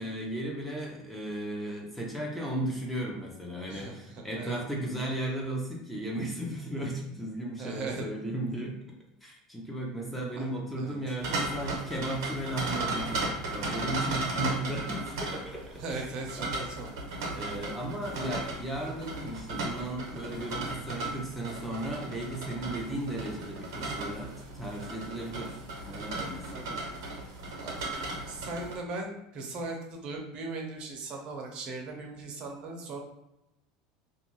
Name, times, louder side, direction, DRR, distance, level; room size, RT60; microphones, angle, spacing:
voice 1, 0.0-8.8 9.2-16.1 16.4-16.7 17.3-26.6, right 1 dB, 5° left, -2 dB, 0.8 m, -35 dB
voice 2, 3.7-4.6 7.6-8.0 10.4-10.5 10.8-11.0 15.8-17.0 18.1-18.4 26.5-26.8 27.6-27.8 28.3-33.0, right 3 dB, 45° right, 1 dB, 0.7 m, -38 dB
sound 1, 11.2-28.8, right 2 dB, 90° right, 0.8 m, -36 dB
2.4 x 2.4 x 3.0 m, 0.87 s
supercardioid pair, 125°, 2 cm